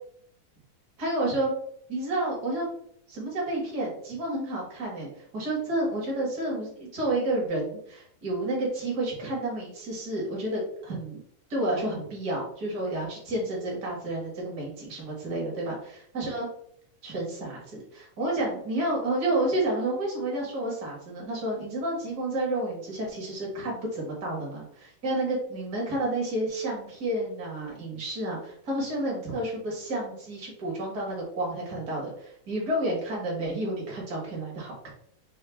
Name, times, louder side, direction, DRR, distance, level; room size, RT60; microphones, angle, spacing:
voice 1, 1.0-1.5 1.9-2.7 3.1-11.2 11.5-16.5 17.0-34.9, right 1 dB, 40° right, -3 dB, 1.5 m, -30 dB
5.6 x 2.7 x 3.5 m, 0.67 s
omnidirectional pair, 3.8 m